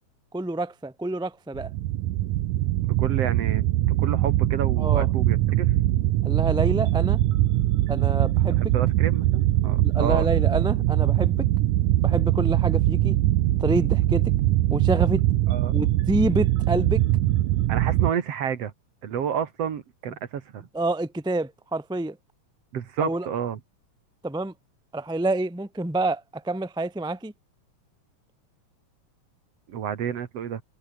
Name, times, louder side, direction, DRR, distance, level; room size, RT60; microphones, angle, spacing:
voice 1, 0.3-1.7 4.8-5.1 6.2-7.2 7.9-8.7 9.8-11.5 12.0-13.2 13.6-14.2 14.7-15.2 15.7-17.0 20.7-22.2 23.0-23.3 24.2-24.5 24.9-27.3, right 2 dB, 5° right, 0.7 m, -27 dB
sound 1, 1.5-18.1, right 15 dB, 90° right, 2.5 m, -22 dB
voice 2, 2.8-3.7 4.0-5.7 8.6-10.3 15.5-15.8 17.7-18.7 19.0-20.7 22.7-23.6 29.7-30.6, right 8 dB, 60° right, 2.6 m, -30 dB
omnidirectional pair, 3.5 m